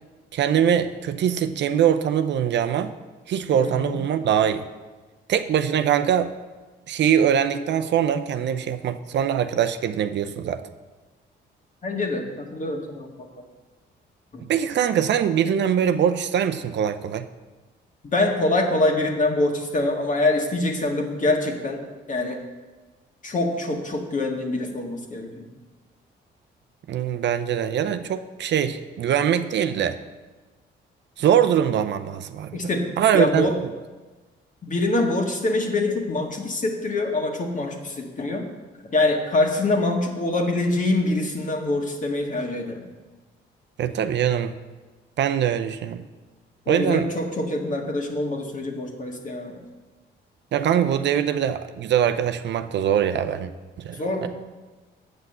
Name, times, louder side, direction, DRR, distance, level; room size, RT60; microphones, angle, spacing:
voice 1, 0.3-2.9 3.3-4.6 5.3-6.3 6.9-10.6 14.5-17.3 26.9-30.0 31.2-32.6 33.0-33.5 43.8-44.6 45.2-46.0 46.7-47.1 50.5-53.5 53.8-54.3, right 9 dB, 65° right, 9 dB, 0.6 m, -22 dB
voice 2, 3.6-4.0 11.8-13.4 14.3-14.4 18.1-21.8 22.1-22.4 23.2-25.5 32.5-32.9 33.1-33.6 34.6-38.5 38.9-42.9 46.6-49.6 53.9-54.3, left 2 dB, 40° left, 2 dB, 1.7 m, -25 dB
7.8 x 5.9 x 7.9 m, 1.3 s
cardioid pair, 90°, 20 cm